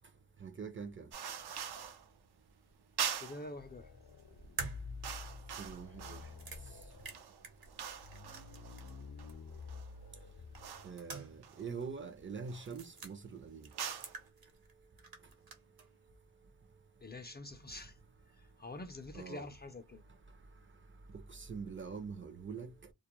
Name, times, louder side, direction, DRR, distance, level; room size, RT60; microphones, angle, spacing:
voice 1, 0.4-1.1 5.6-6.2 10.8-13.7 19.1-19.5 21.1-22.9, right 5 dB, 30° right, 0.5 m, -44 dB
sound 1, 1.1-2.1 3.0-3.5 4.3-4.5 4.8-6.4 6.9-9.9 10.6-11.0 11.4-12.0 12.4-12.8 13.6-14.2, right 8 dB, 80° right, 0.6 m, -43 dB
voice 2, 3.2-3.9 17.0-18.0 18.3-20.0, left 2 dB, 25° left, 0.4 m, -46 dB
sound 2, 3.4-4.9 5.3-5.4 5.6-7.2 7.8-11.0, left 4 dB, 65° left, 0.6 m, -52 dB
sound 3, 4.6-9.0 9.3-9.4 10.5-11.5 11.8-11.9 12.6-13.1 13.6-14.7 15.0-15.9, right 2 dB, 65° right, 0.9 m, -47 dB
2.3 x 2.1 x 2.9 m
cardioid pair, 65°, 38 cm